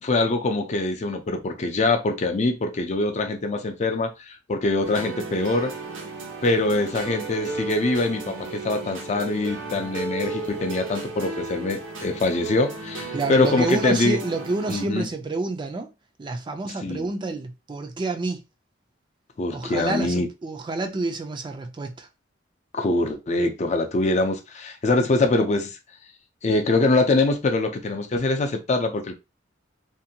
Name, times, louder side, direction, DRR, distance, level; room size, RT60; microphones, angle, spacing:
voice 1, 0.0-5.7 6.4-14.2 14.7-15.1 16.8-17.0 19.4-20.3 22.7-25.8 26.4-29.1, left 2 dB, 40° left, 0.4 m, -23 dB
sound 1, 4.8-14.9, right 3 dB, 90° right, 0.7 m, -34 dB
voice 2, 13.1-15.9 16.2-18.4 19.5-22.1, right 3 dB, 25° right, 0.3 m, -28 dB
2.6 x 2.2 x 2.7 m
head